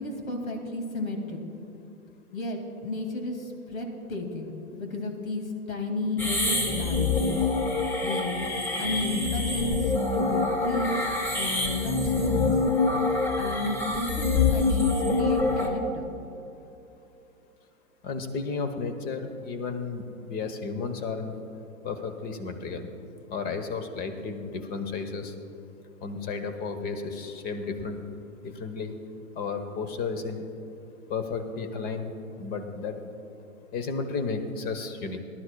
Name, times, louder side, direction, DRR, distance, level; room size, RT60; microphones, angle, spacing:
voice 1, 0.0-1.4 2.3-7.4 8.0-8.3 8.8-11.0 11.3-12.5 13.4-16.0, left 2 dB, 75° left, 4 dB, 2.3 m, -32 dB
sound 1, 6.2-15.7, left 3 dB, 5° left, 0.4 m, -26 dB
voice 2, 18.0-21.3 21.8-22.9 23.3-25.3 26.0-28.0 28.4-28.9 29.4-30.5 31.1-32.1 32.4-33.0 33.7-35.2, left 4 dB, 20° left, 8 dB, 0.9 m, -33 dB
19.5 x 12.0 x 2.2 m, 2.8 s
hypercardioid pair, 120°, 41 cm